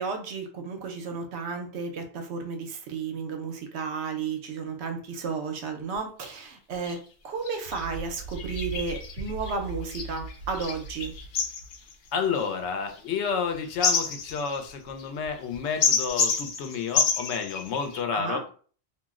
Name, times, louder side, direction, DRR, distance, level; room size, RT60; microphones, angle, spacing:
voice 1, 0.0-11.1 18.1-18.4, right 5 dB, 80° right, 4 dB, 0.9 m, -33 dB
sound 1, 5.9-6.0 6.2-6.4 6.8-7.0 7.4-18.0, left 5 dB, 60° left, 0.6 m, -30 dB
voice 2, 12.1-18.4, left 6 dB, 85° left, 6 dB, 0.9 m, -30 dB
2.4 x 2.0 x 3.5 m, 0.42 s
omnidirectional pair, 1.1 m